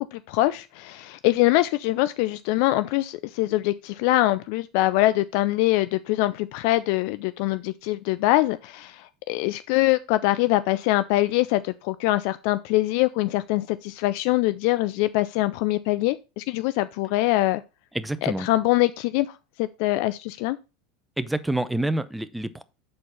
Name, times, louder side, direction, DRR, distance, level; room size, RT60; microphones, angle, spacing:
voice 1, 0.0-17.6 18.2-20.6, left 17 dB, 60° left, 0.3 m, -23 dB
voice 2, 17.9-18.5 21.2-22.6, right 1 dB, 5° right, 0.7 m, -27 dB
6.5 x 4.2 x 5.5 m
hypercardioid pair, 80°, 0 cm